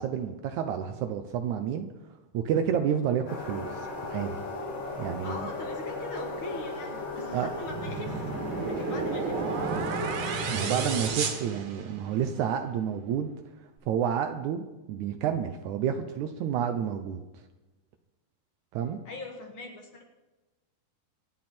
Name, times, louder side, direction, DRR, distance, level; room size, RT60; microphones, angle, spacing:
voice 1, 0.0-1.9 2.3-4.4 5.0-5.5 7.3-7.5 10.5-13.3 13.9-17.2 18.7-19.0, right 8 dB, 85° right, 6 dB, 1.6 m, -30 dB
sound 1, 3.3-11.1, left 3 dB, 80° left, 4.8 m, -37 dB
voice 2, 5.2-8.3 8.7-10.3 19.0-20.0, left 2 dB, 45° left, 3 dB, 1.9 m, -41 dB
sound 2, 7.7-12.3, right 5 dB, 60° right, 2.8 m, -32 dB
25.0 x 9.4 x 4.4 m, 1.1 s
omnidirectional pair, 4.4 m